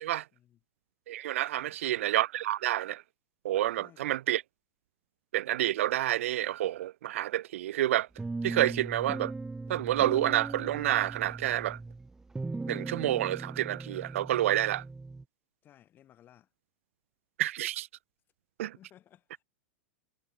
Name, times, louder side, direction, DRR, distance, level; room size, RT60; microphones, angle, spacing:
voice 1, 1.1-3.0 3.4-4.4 5.3-8.1 8.4-9.3 9.7-11.8 12.7-14.8 17.4-17.9 18.6-18.8, right 14 dB, 80° right, 0.4 m, -29 dB
voice 2, 3.8-4.2 15.6-16.5 18.8-19.4, left 11 dB, 30° left, 4.7 m, -59 dB
sound 1, 8.2-15.2, right 3 dB, 5° right, 0.5 m, -39 dB
supercardioid pair, 140°, 7 cm